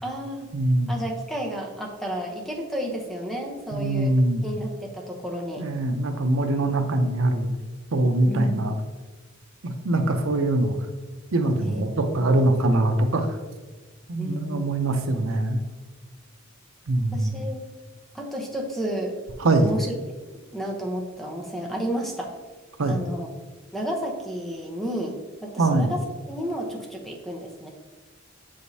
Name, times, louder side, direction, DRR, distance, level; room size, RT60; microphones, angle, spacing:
voice 1, 0.0-0.5 0.9-4.1 4.4-5.7 8.3-8.7 11.6-12.5 14.2-14.7 17.1-17.7 18.1-19.1 19.6-19.9 20.5-22.3 22.9-23.3 23.7-27.7, equal, ahead, 1 dB, 0.8 m, -32 dB
voice 2, 0.5-0.9 3.7-4.4 5.6-7.6 7.9-8.7 9.6-10.8 11.3-13.3 14.1-15.6 16.9-17.4 19.4-19.7 22.8-23.0 25.6-25.9, right 2 dB, 80° right, 6 dB, 0.7 m, -23 dB
7.0 x 5.0 x 2.7 m, 1.3 s
head